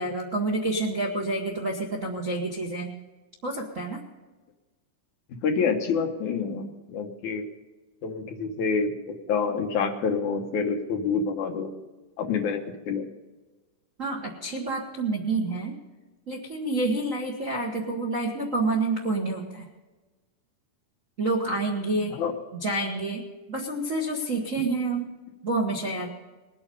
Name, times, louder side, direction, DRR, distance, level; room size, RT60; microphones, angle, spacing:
voice 1, 0.0-2.9 3.4-4.0 14.0-15.8 16.3-19.7 21.2-22.1 22.5-23.2 23.5-25.1 25.4-26.1, right 2 dB, 50° right, 0 dB, 0.9 m, -28 dB
voice 2, 5.4-7.4 8.0-8.9 9.3-11.7 12.2-13.1 22.1-22.3, left 5 dB, 70° left, 4 dB, 2.6 m, -27 dB
20.5 x 8.9 x 5.3 m, 1.2 s
omnidirectional pair, 3.7 m